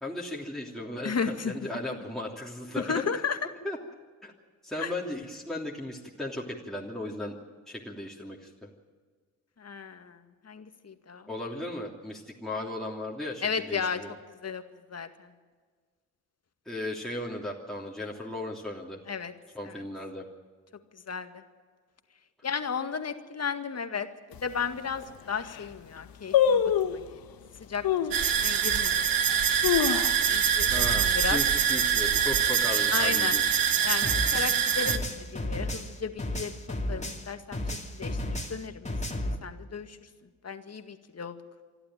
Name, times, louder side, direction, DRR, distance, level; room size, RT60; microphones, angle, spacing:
voice 1, 0.0-3.0 3.6-3.8 4.2-4.3 4.6-7.3 7.7-8.5 11.3-14.1 16.7-19.0 19.5-20.2 30.7-33.4, left 1 dB, ahead, -3 dB, 3.1 m, -36 dB
voice 2, 1.0-1.5 2.8-3.4 4.8-4.9 9.6-10.2 10.4-11.2 13.4-14.0 14.4-14.6 14.9-15.3 19.1-19.3 19.6-19.8 21.1-21.3 22.4-24.1 24.4-27.2 27.7-27.8 28.2-29.1 29.8-30.0 30.3-31.4 32.9-33.4 33.8-35.0 35.3-36.5 36.9-37.6 38.0-38.9 39.4-40.0 40.4-41.4, left 6 dB, 35° left, 8 dB, 2.0 m, -34 dB
sound 1, 24.3-24.4 25.0-25.1 25.3-25.7 26.3-27.1 27.8-28.2 28.8-28.9 29.4-30.5 30.8-30.9 31.2-31.6 32.0-32.4 33.0-33.8 34.0-34.1, left 8 dB, 55° left, 1.4 m, -25 dB
sound 2, 28.1-35.0, right 8 dB, 55° right, 1.6 m, -25 dB
sound 3, 34.0-37.3 37.5-39.4, left 1 dB, 15° left, 2.9 m, -33 dB
27.0 x 12.0 x 9.1 m, 1.5 s
hypercardioid pair, 45°, 41 cm